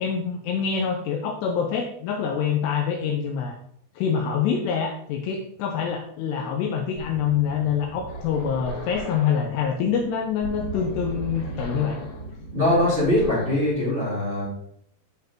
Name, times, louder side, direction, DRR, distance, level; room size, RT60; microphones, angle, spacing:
voice 1, 0.0-3.6 4.0-12.0, left 7 dB, 80° left, 3 dB, 2.5 m, -25 dB
sound 1, 7.0-13.7, equal, 35° left, 3.2 m, -37 dB
voice 2, 12.5-14.5, left 1 dB, 15° right, -9 dB, 3.2 m, -22 dB
10.5 x 5.4 x 3.0 m, 0.69 s
omnidirectional pair, 5.3 m